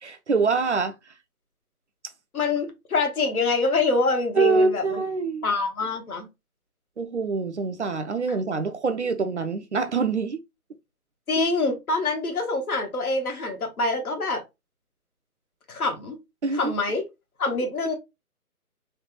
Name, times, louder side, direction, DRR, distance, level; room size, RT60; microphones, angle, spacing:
voice 1, 0.0-1.0 4.4-5.4 7.0-10.4 16.4-16.7, right 4 dB, 50° right, 0.5 m, -25 dB
voice 2, 2.3-5.0 5.4-6.3 11.3-14.4 15.7-16.2 16.5-17.0 17.4-17.9, left 3 dB, 70° left, 1.3 m, -25 dB
3.2 x 2.3 x 3.0 m
hypercardioid pair, 160°, 45 cm